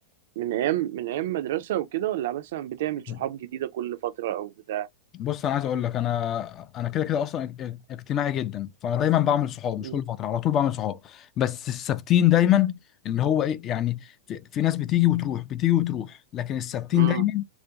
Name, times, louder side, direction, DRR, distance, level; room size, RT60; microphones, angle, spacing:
voice 1, 0.4-4.9 9.8-10.0 16.9-17.2, right 13 dB, 60° right, 0.3 m, -29 dB
voice 2, 5.2-12.8 13.0-17.4, left 12 dB, 35° left, 0.3 m, -25 dB
2.4 x 2.1 x 2.7 m
figure-of-eight pair, 95°, 0 cm